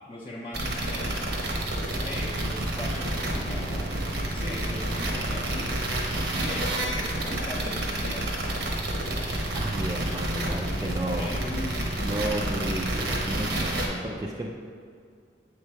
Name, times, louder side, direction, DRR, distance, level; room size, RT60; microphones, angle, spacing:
voice 1, 0.1-1.4 2.0-3.9 4.3-5.8 6.3-8.6 11.1-12.0, left 1 dB, 30° left, -7 dB, 0.6 m, -39 dB
sound 1, 0.5-13.9, right 1 dB, 75° right, 0.9 m, -29 dB
voice 2, 9.5-11.4 12.0-14.5, right 1 dB, 20° right, -1 dB, 0.3 m, -32 dB
7.0 x 3.2 x 4.7 m, 2.1 s
head